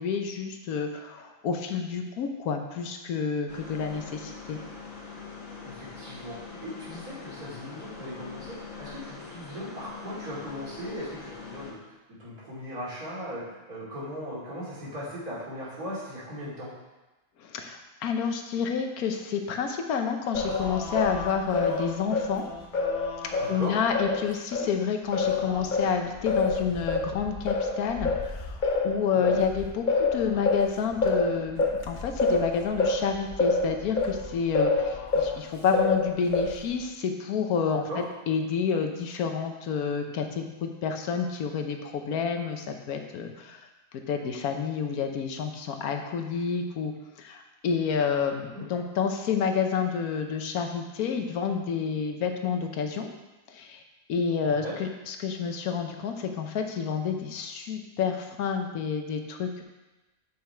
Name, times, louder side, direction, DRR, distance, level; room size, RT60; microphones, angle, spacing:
voice 1, 0.0-4.6 17.4-22.4 23.5-28.6 28.8-37.9 38.3-43.7 44.1-46.9 47.2-53.1 53.5-53.8 54.1-59.6, left 6 dB, 85° left, 5 dB, 1.3 m, -29 dB
sound 1, 3.5-11.7, left 4 dB, 65° left, 1.6 m, -43 dB
voice 2, 5.6-11.9 12.2-13.4 13.7-16.7 23.4-23.8 29.1-29.4 37.7-38.0 48.3-48.6 54.4-54.8, equal, 90° right, -8 dB, 3.2 m, -38 dB
Singing, 20.3-24.7 25.1-35.4 35.7-36.7, left 3 dB, 40° left, 0.8 m, -27 dB
7.4 x 5.6 x 4.4 m, 1.1 s
omnidirectional pair, 1.5 m